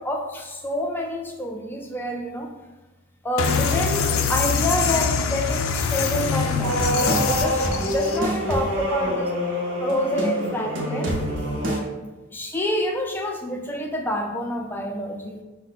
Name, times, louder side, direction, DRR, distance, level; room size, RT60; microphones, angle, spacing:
voice 1, 0.0-2.5 3.2-9.3 9.8-11.1 12.3-15.4, left 1 dB, 10° left, 1 dB, 0.4 m, -27 dB
sound 1, 3.4-8.2, left 5 dB, 90° left, 0.4 m, -24 dB
sound 2, 6.6-11.8, equal, 60° right, 0.7 m, -25 dB
5.4 x 2.2 x 3.9 m, 1.1 s
head